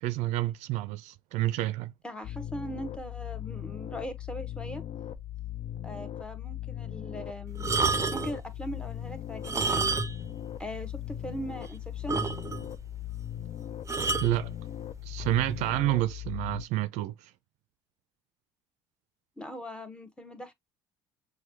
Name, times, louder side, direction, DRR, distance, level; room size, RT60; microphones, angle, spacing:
voice 1, 0.0-1.9 14.2-14.5 15.0-17.3, right 15 dB, 70° right, 0.4 m, -29 dB
voice 2, 2.0-4.8 5.8-7.7 8.1-10.0 10.6-12.2 19.4-20.5, equal, 10° left, 1.0 m, -40 dB
sound 1, 2.2-16.7, left 11 dB, 50° left, 0.5 m, -39 dB
sound 2, 7.6-8.4 9.3-10.3 10.6-10.7 11.3-11.4 11.6-11.7 12.1-12.7 13.9-14.3 15.2-15.4, right 4 dB, 25° right, 0.6 m, -29 dB
6.2 x 2.2 x 2.8 m
hypercardioid pair, 65°, 12 cm